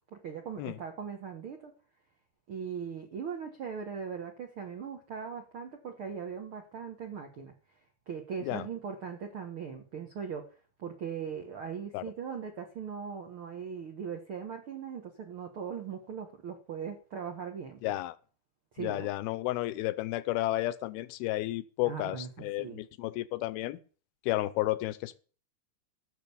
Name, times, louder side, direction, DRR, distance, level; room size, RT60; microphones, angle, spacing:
voice 1, 0.1-1.7 2.5-7.5 8.1-10.4 10.8-17.9 18.7-19.1 21.8-22.8, right 7 dB, 80° right, 1.1 m, -39 dB
voice 2, 17.8-18.2 18.8-23.8 24.3-25.2, left 17 dB, 80° left, 2.5 m, -32 dB
15.0 x 6.8 x 7.0 m
omnidirectional pair, 4.6 m